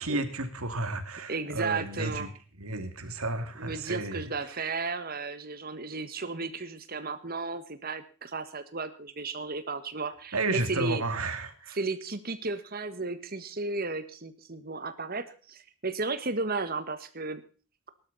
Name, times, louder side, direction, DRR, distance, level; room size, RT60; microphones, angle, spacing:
voice 1, 0.0-2.3 2.6-4.6 10.3-11.8, right 2 dB, 90° right, 8 dB, 2.6 m, -32 dB
voice 2, 1.3-2.3 3.6-11.0 11.7-17.4, right 3 dB, 45° right, 11 dB, 1.6 m, -34 dB
18.0 x 12.0 x 4.2 m, 0.39 s
head